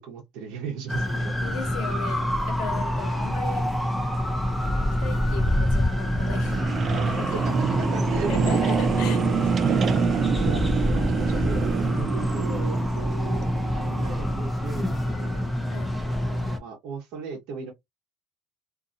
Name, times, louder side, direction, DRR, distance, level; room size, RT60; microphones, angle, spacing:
voice 1, 0.0-1.4 7.3-8.3 9.2-9.9 10.4-13.5 13.7-15.5 16.3-17.7, right 5 dB, 70° right, 1.0 m, -36 dB
sound 1, 0.9-16.6, left 1 dB, ahead, 0.7 m, -26 dB
voice 2, 1.4-3.7 5.0-7.5 8.3-9.2 15.7-16.0, left 6 dB, 75° left, 1.0 m, -37 dB
sound 2, 4.6-14.4, right 7 dB, 40° right, 0.4 m, -27 dB
2.7 x 2.5 x 2.5 m
cardioid pair, 125°, 0 cm